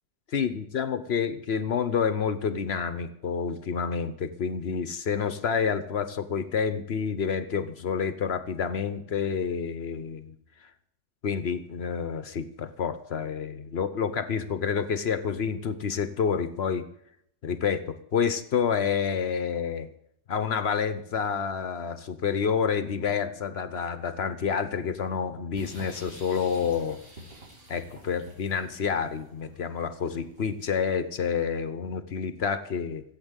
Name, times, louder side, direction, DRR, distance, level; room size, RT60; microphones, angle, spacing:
voice 1, 0.3-10.3 11.2-16.9 17.4-19.9 20.3-27.0 27.7-33.0, left 6 dB, 70° left, 12 dB, 1.1 m, -28 dB
sound 1, 25.6-30.7, right 1 dB, 60° right, 3.7 m, -47 dB
16.0 x 8.3 x 8.1 m, 0.73 s
omnidirectional pair, 1.1 m